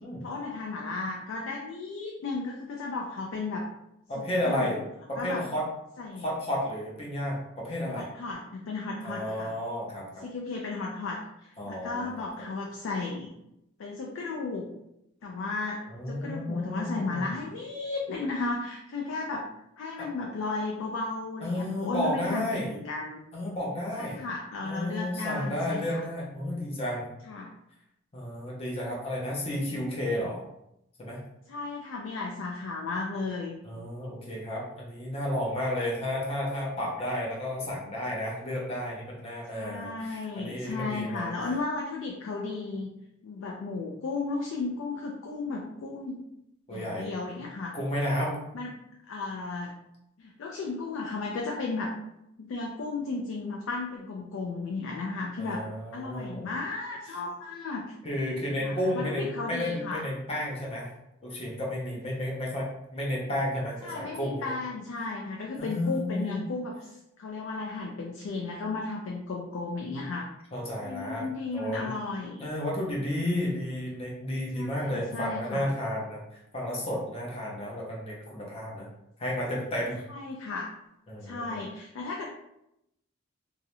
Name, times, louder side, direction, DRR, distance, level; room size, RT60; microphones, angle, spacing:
voice 1, 0.2-3.7 4.1-4.8 5.2-5.4 6.0-6.3 7.8-9.5 10.2-13.3 13.8-14.7 15.2-15.8 16.1-19.5 19.8-23.2 24.0-26.0 27.3-27.5 31.5-33.6 39.5-42.9 43.2-46.2 46.7-47.7 48.5-48.7 49.1-49.7 50.2-51.9 52.4-55.6 55.9-57.9 58.6-60.1 63.8-70.3 70.8-72.5 74.6-75.7 80.1-80.7 81.2-82.3, left 3 dB, 70° left, -1 dB, 0.3 m, -34 dB
voice 2, 4.1-4.8 5.1-5.7 6.2-8.1 9.0-10.2 11.6-12.2 15.9-17.3 20.0-20.1 21.4-22.7 23.3-24.2 24.6-27.1 28.1-30.4 31.0-31.2 33.6-41.3 46.7-47.1 47.7-48.4 55.4-56.5 58.0-60.9 61.2-64.5 65.6-66.4 70.5-71.9 72.4-78.9 79.2-80.0 81.1-81.7, left 1 dB, 30° left, -4 dB, 0.6 m, -32 dB
2.3 x 2.0 x 2.9 m, 0.83 s
head